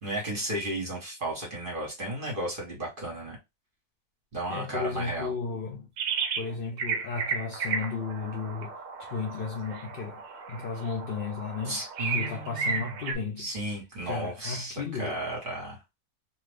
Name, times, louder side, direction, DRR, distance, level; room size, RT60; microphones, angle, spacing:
voice 1, 0.0-3.4 4.3-5.3 11.7-12.9 13.4-15.8, right 1 dB, 35° right, 1.4 m, -34 dB
voice 2, 4.5-5.9 6.4-10.2 10.5-11.8 12.1-13.5 14.1-15.2, left 5 dB, 70° left, 0.5 m, -34 dB
sound 1, 6.0-6.5 6.8-13.2, right 5 dB, 65° right, 0.9 m, -34 dB
2.6 x 2.5 x 3.3 m
omnidirectional pair, 1.6 m